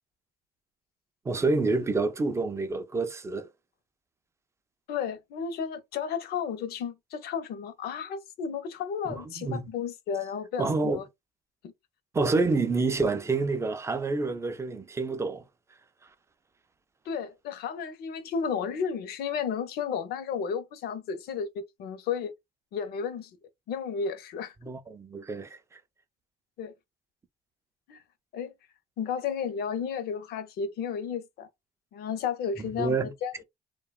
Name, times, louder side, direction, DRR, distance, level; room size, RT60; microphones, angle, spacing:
voice 1, 1.3-3.5 9.1-9.6 10.6-11.0 12.1-15.4 24.6-25.6 32.6-33.1, right 3 dB, 15° right, 0.4 m, -28 dB
voice 2, 4.9-11.0 17.1-22.3 22.7-23.3 23.7-24.5 26.6-26.7 27.9-28.0 28.3-28.5 29.0-31.5 31.9-33.4, left 6 dB, 70° left, 0.6 m, -33 dB
2.8 x 2.2 x 2.3 m
cardioid pair, 110°, 17 cm